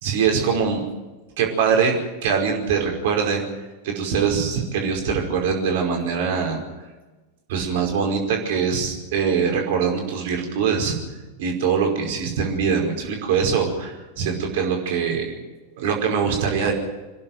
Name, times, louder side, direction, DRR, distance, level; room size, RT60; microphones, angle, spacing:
voice 1, 0.0-0.8 1.4-3.4 3.8-6.6 7.5-11.0 11.4-15.3 15.8-16.7, right 6 dB, 55° right, 2 dB, 5.2 m, -23 dB
26.0 x 11.0 x 9.4 m, 1.2 s
figure-of-eight pair, 90°, 0 cm